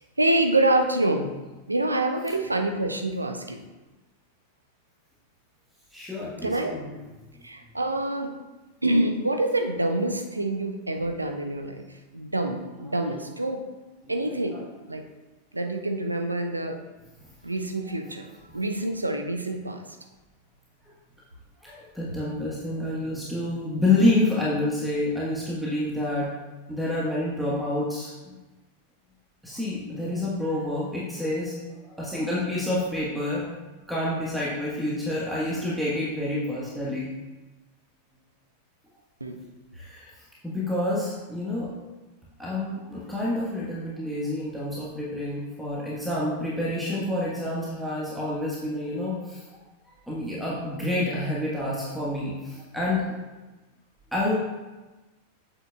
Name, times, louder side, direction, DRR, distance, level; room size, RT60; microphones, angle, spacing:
voice 1, 0.2-1.3 1.7-3.6 6.4-6.8 7.4-8.3 8.8-11.8 12.1-13.6 14.1-15.0 15.5-16.8 17.4-18.3 18.5-19.8 39.2-39.4, right 2 dB, 85° right, 5 dB, 0.6 m, -26 dB
voice 2, 5.9-7.0 12.9-13.2 14.0-14.7 17.8-18.1 21.6-26.3 26.7-28.3 29.4-31.5 31.9-33.4 33.9-37.1 39.7-40.1 40.4-41.7 42.4-49.4 50.1-53.0 54.1-54.3, left 1 dB, ahead, -7 dB, 1.3 m, -28 dB
8.0 x 6.8 x 2.3 m, 1.2 s
figure-of-eight pair, 90°, 0 cm